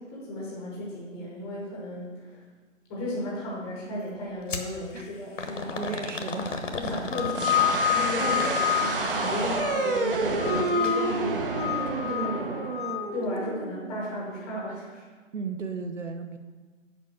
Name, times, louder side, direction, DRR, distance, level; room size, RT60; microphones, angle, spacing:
voice 1, 0.0-2.4 2.9-5.9 6.8-8.5 8.8-11.7 11.9-12.6 13.1-15.1, left 1 dB, 5° left, -5 dB, 0.9 m, -34 dB
sound 1, 4.5-4.7 5.4-9.1 10.7-11.0 11.3-11.4 12.3-12.4, left 3 dB, 70° left, 1.2 m, -34 dB
voice 2, 5.8-7.1 8.2-8.6 15.3-16.4, right 4 dB, 65° right, 7 dB, 0.9 m, -35 dB
sound 2, 7.1-10.0 10.4-11.2 11.5-13.1, left 11 dB, 55° left, 0.7 m, -28 dB
sound 3, 7.3-14.1, right 3 dB, 45° right, 0.9 m, -29 dB
7.5 x 5.1 x 6.5 m, 1.4 s
figure-of-eight pair, 150°, 39 cm